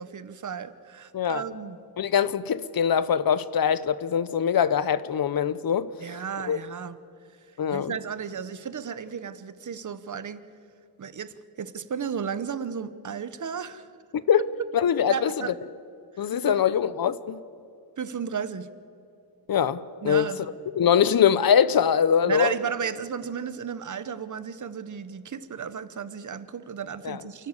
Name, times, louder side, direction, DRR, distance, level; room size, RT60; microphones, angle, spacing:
voice 1, 0.0-1.8 6.0-7.0 7.7-10.4 11.0-13.9 15.1-15.5 16.1-16.6 18.0-18.7 20.0-20.5 22.2-27.5, right 7 dB, 45° right, 14 dB, 0.9 m, -34 dB
voice 2, 2.0-5.9 6.5-6.6 7.6-7.9 14.3-14.4 14.7-15.3 16.2-17.4 19.5-20.3 20.7-22.5 27.0-27.2, left 8 dB, 60° left, 17 dB, 0.7 m, -23 dB
29.0 x 12.0 x 8.2 m, 2.5 s
wide cardioid pair, 150°, 41 cm